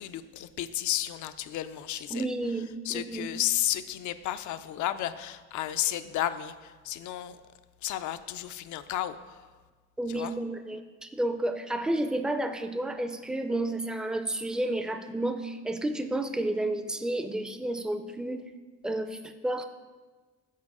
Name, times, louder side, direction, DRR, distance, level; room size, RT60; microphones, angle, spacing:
voice 1, 0.0-2.3 2.9-7.4 7.8-9.4 10.1-10.3, left 13 dB, 75° left, 12 dB, 0.4 m, -32 dB
voice 2, 1.9-3.3 10.0-18.5 18.8-19.6, right 1 dB, 5° right, 8 dB, 0.4 m, -31 dB
7.4 x 4.2 x 4.7 m, 1.3 s
cardioid pair, 90°, 30 cm